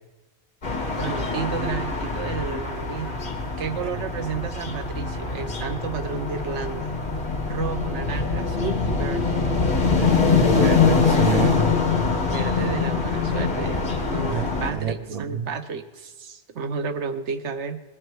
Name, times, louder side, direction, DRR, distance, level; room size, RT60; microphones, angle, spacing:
sound 1, 0.6-14.7, left 4 dB, 50° left, 1.6 m, -24 dB
voice 1, 1.0-3.3 3.6-7.0 7.5-9.5 12.3-17.8, right 6 dB, 90° right, 9 dB, 1.1 m, -32 dB
voice 2, 10.0-11.6 14.3-15.5, right 6 dB, 50° right, 10 dB, 0.5 m, -28 dB
19.5 x 9.6 x 4.7 m, 1.2 s
omnidirectional pair, 1.1 m